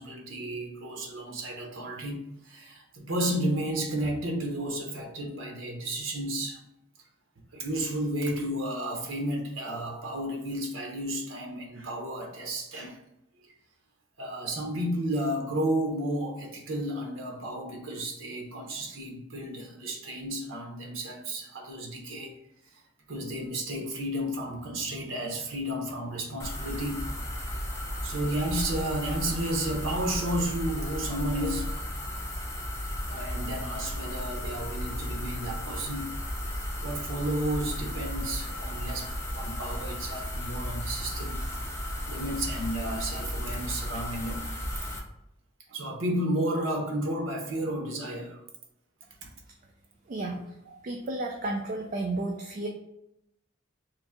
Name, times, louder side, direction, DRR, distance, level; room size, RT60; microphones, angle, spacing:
voice 1, 0.0-6.6 7.5-13.0 14.2-22.3 23.1-27.1 28.0-31.7 33.0-36.2 36.8-41.4 42.1-44.5 45.7-48.4 49.2-49.3, right 1 dB, 85° right, 2 dB, 0.8 m, -32 dB
sound 1, 26.4-45.0, left 1 dB, 15° left, 0.6 m, -34 dB
voice 2, 50.1-50.4 50.8-52.7, right 2 dB, 45° right, 1 dB, 0.4 m, -32 dB
3.1 x 2.6 x 3.6 m, 0.82 s
head